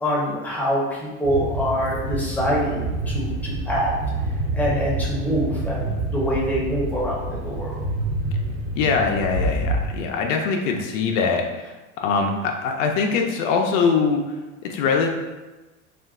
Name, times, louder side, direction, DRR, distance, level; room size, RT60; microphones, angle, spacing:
voice 1, 0.0-3.9 4.5-7.9, equal, 5° left, -5 dB, 0.6 m, -25 dB
sound 1, 1.2-9.9, right 2 dB, 50° right, 0.8 m, -27 dB
voice 2, 8.7-11.7 12.0-14.2 14.6-15.1, left 5 dB, 90° left, 2 dB, 0.5 m, -22 dB
2.4 x 2.2 x 3.5 m, 1.2 s
supercardioid pair, 130°, 37 cm